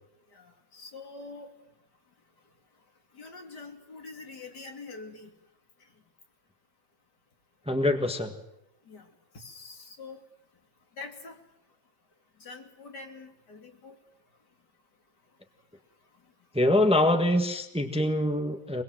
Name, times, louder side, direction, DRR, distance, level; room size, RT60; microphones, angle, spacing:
voice 1, 0.3-1.5 3.1-5.3 8.9-9.1 9.3-10.2 11.0-11.4 12.4-14.0, left 3 dB, 75° left, 3 dB, 3.3 m, -45 dB
voice 2, 7.7-8.4 16.5-18.8, left 1 dB, 5° right, 6 dB, 1.3 m, -24 dB
23.5 x 21.5 x 7.7 m, 0.88 s
omnidirectional pair, 1.8 m